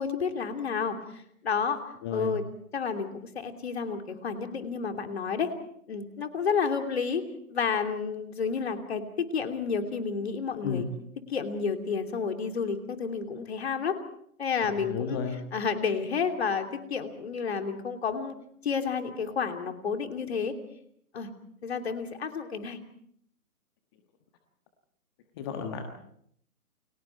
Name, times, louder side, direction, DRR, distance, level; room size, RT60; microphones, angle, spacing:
voice 1, 0.0-1.8 2.1-2.4 2.7-5.5 5.9-7.2 7.5-10.8 11.3-14.0 14.4-15.2 15.5-18.3 18.6-20.5 21.1-21.3 21.6-22.8, left 5 dB, 45° left, 5 dB, 3.0 m, -30 dB
voice 2, 2.0-2.3 10.6-10.9 14.8-15.4 25.4-25.8, left 6 dB, 15° left, 5 dB, 1.3 m, -33 dB
30.0 x 23.0 x 4.5 m, 0.68 s
figure-of-eight pair, 140°, 45 cm